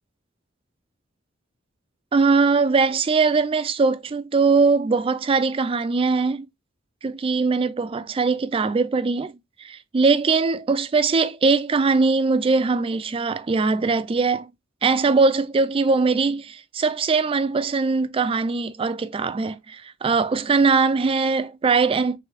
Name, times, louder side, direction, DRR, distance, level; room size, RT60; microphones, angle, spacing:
voice 1, 2.1-6.5 7.0-9.3 9.6-14.5 14.8-22.2, right 4 dB, 25° right, 0.3 m, -21 dB
3.2 x 3.2 x 3.5 m
head